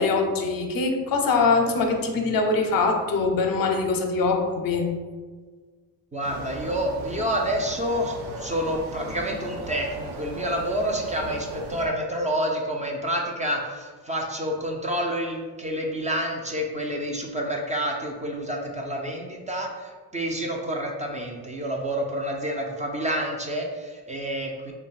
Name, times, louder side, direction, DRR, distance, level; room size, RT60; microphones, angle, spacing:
voice 1, 0.0-4.9, left 3 dB, 55° left, 4 dB, 0.6 m, -23 dB
voice 2, 6.1-24.7, equal, 20° right, 0 dB, 0.4 m, -28 dB
sound 1, 6.2-11.9, right 1 dB, 70° right, 0.7 m, -37 dB
3.0 x 2.2 x 4.1 m, 1.5 s
cardioid pair, 100°, 41 cm